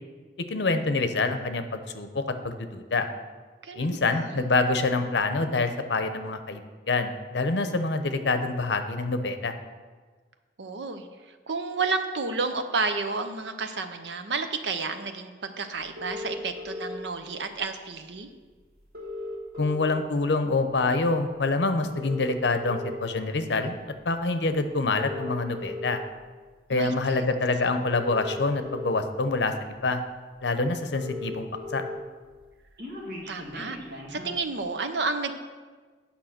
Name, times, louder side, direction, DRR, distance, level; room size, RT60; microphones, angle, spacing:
voice 1, 0.5-3.1 3.8-9.5 19.6-23.8 24.0-26.0 26.7-29.5 29.8-30.0 30.4-31.8, left 3 dB, 85° left, 8 dB, 0.7 m, -26 dB
voice 2, 3.6-4.5 10.6-18.3 26.7-27.2 33.3-35.3, right 4 dB, 85° right, 8 dB, 0.8 m, -31 dB
sound 1, 16.0-17.0 18.2-18.3 18.5-18.6 18.8-20.2 20.7-21.0 21.8-23.0 23.7-23.9 24.8-26.0 27.2-27.3 27.8-29.0 29.6-29.7 30.0-30.1 30.4-30.5 30.7-32.0 32.3-34.4, left 2 dB, 60° right, 1.9 m, -37 dB
8.8 x 5.7 x 5.9 m, 1.4 s
head